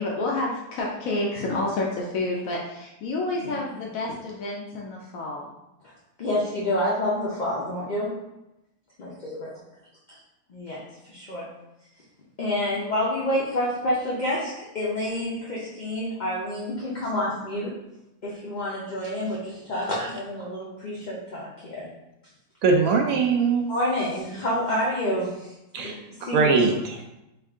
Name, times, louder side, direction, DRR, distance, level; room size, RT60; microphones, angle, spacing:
voice 1, 0.0-5.5, left 2 dB, 75° left, -2 dB, 1.0 m, -29 dB
voice 2, 6.2-8.1 9.0-9.5 10.5-10.8 11.1-11.5 12.4-17.7 18.2-21.9 23.7-25.5 25.8-25.9 26.2-26.5, left 1 dB, 55° left, -6 dB, 0.5 m, -28 dB
voice 3, 22.6-23.7 25.7-27.0, right 4 dB, 75° right, 2 dB, 1.0 m, -22 dB
3.6 x 2.4 x 3.4 m, 0.91 s
omnidirectional pair, 1.5 m